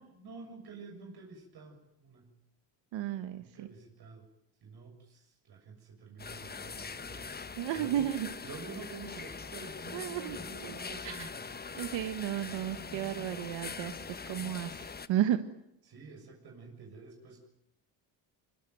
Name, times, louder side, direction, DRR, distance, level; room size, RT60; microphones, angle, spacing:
voice 1, 0.0-2.3 3.4-4.3 4.6-8.1 8.4-11.5 12.8-13.5 15.8-17.4, right 4 dB, 55° right, 2 dB, 7.0 m, -49 dB
voice 2, 2.9-3.7 7.6-8.3 9.9-10.8 11.0-11.1 11.7-15.4, right 11 dB, 70° right, 9 dB, 1.7 m, -33 dB
sound 1, 6.2-15.1, left 5 dB, 20° left, 1.2 m, -42 dB
24.0 x 23.5 x 9.3 m, 0.81 s
cardioid pair, 115°, 46 cm